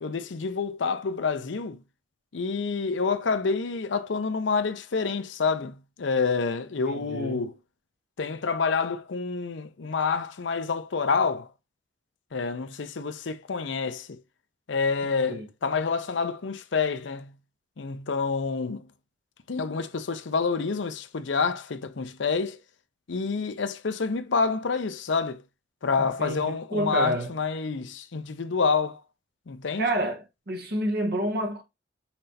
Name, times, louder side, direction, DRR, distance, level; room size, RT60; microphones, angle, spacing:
voice 1, 0.0-1.8 2.3-7.5 8.2-11.5 12.3-14.2 14.7-17.3 17.8-18.9 19.5-22.6 23.1-25.4 25.8-29.0 29.5-29.9, left 4 dB, 70° left, 0.6 m, -28 dB
voice 2, 6.9-7.4 15.3-15.5 26.0-27.3 29.8-31.6, right 1 dB, 55° right, 1.2 m, -29 dB
5.8 x 3.3 x 2.8 m
head